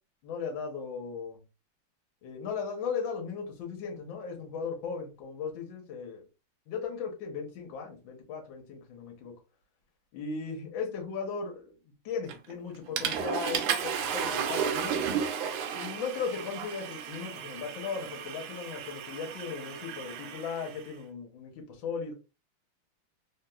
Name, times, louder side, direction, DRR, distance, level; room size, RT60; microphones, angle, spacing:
voice 1, 0.2-1.4 2.2-6.2 6.7-9.3 10.1-11.7 12.0-15.1 15.7-22.1, left 5 dB, 65° left, 1.5 m, -37 dB
Water / Toilet flush, 12.3-12.5 13.0-20.8, right 7 dB, 75° right, 1.3 m, -33 dB
3.6 x 2.8 x 2.2 m
omnidirectional pair, 2.4 m